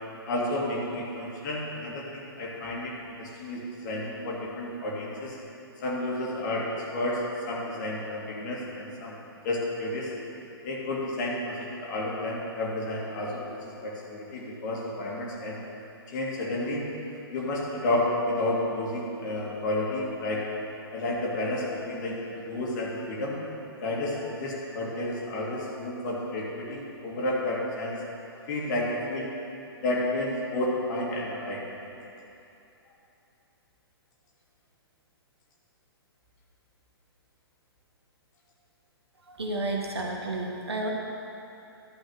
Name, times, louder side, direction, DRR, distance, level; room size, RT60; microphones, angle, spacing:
voice 1, 0.3-5.4 5.8-9.1 9.4-10.1 10.6-15.6 16.1-16.9 17.3-20.4 20.9-23.4 23.8-27.9 28.5-29.3 29.8-31.6, left 1 dB, 45° left, -3 dB, 2.1 m, -31 dB
voice 2, 39.3-40.9, right 2 dB, 80° right, -1 dB, 1.6 m, -31 dB
11.5 x 4.0 x 7.9 m, 2.9 s
figure-of-eight pair, 120°, 13 cm